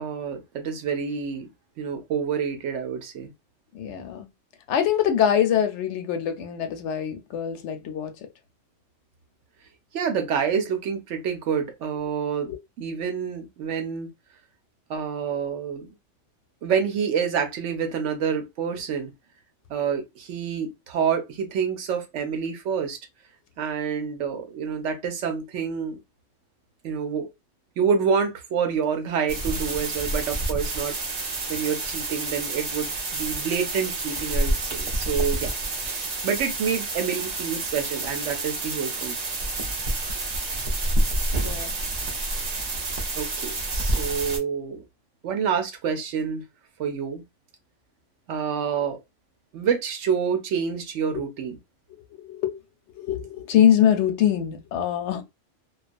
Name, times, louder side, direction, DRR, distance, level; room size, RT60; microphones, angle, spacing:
voice 1, 0.0-1.5 1.8-3.3 9.9-12.5 12.8-14.1 14.9-15.9 16.6-19.1 19.7-23.0 23.6-26.0 26.8-27.3 27.8-35.5 35.8-39.2 43.2-44.8 45.2-46.4 46.8-47.2 48.3-49.0 49.5-51.5, right 7 dB, 75° right, 1.0 m, -27 dB
voice 2, 3.7-4.3 4.7-8.1 12.5-12.6 41.4-41.8 51.1-51.2 52.1-52.6 53.0-55.2, left 9 dB, 75° left, 0.9 m, -23 dB
sound 1, 29.3-44.4, right 2 dB, 45° right, 0.6 m, -28 dB
2.4 x 2.3 x 2.4 m
omnidirectional pair, 1.3 m